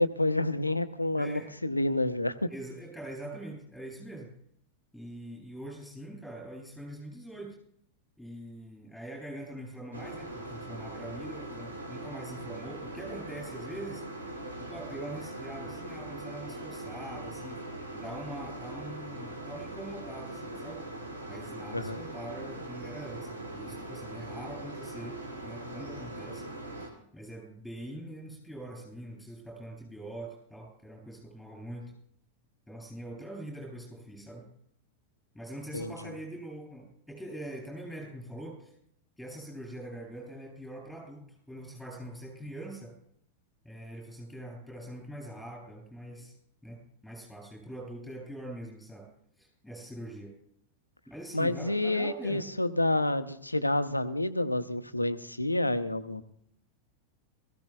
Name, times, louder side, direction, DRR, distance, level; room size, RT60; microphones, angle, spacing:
voice 1, 0.0-2.5 21.7-22.0 35.7-36.1 51.3-56.2, left 1 dB, 85° left, 11 dB, 0.8 m, -29 dB
voice 2, 1.1-1.7 2.5-4.3 4.9-7.6 8.2-14.0 14.6-17.6 17.9-20.8 21.3-26.5 26.8-31.9 32.7-34.5 35.3-38.7 39.2-42.9 43.6-46.3 46.6-49.1 49.4-50.3 51.1-52.4, right 1 dB, ahead, -1 dB, 7.8 m, -43 dB
sound 1, 9.9-26.9, right 2 dB, 75° right, 3.1 m, -41 dB
22.0 x 15.5 x 2.3 m, 0.67 s
figure-of-eight pair, 90°, 0 cm